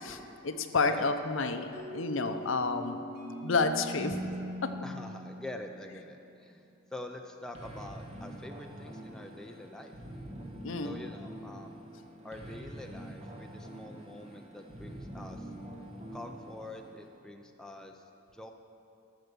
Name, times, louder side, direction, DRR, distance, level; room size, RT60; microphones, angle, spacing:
voice 1, 0.0-3.0 3.4-4.2 4.6-4.7 10.6-11.0, left 3 dB, 60° left, 8 dB, 0.6 m, -30 dB
sound 1, 1.7-6.4, equal, 45° right, 2.9 m, -41 dB
voice 2, 4.8-6.6 6.9-10.0 10.8-11.8 12.2-15.5 16.1-18.1 18.3-18.5, left 1 dB, 5° left, 3 dB, 0.5 m, -45 dB
sound 2, 7.5-17.1, right 1 dB, 30° right, 1.2 m, -45 dB
13.5 x 6.6 x 6.7 m, 2.7 s
head